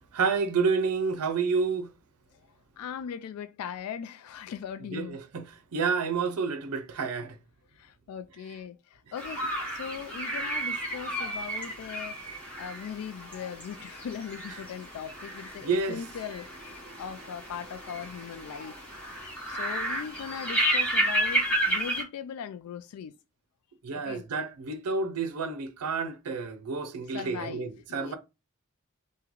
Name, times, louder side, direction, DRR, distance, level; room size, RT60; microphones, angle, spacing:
voice 1, 0.2-1.9 4.9-5.4 5.7-7.3 15.6-16.0 23.8-28.2, right 5 dB, 90° right, 0.5 m, -29 dB
voice 2, 2.8-5.2 7.8-12.2 12.6-16.5 17.0-18.7 19.5-23.1 23.9-24.2 27.1-28.2, left 8 dB, 85° left, 0.3 m, -39 dB
sound 1, 9.2-22.0, right 1 dB, 5° left, 1.0 m, -32 dB
3.0 x 2.2 x 3.6 m
head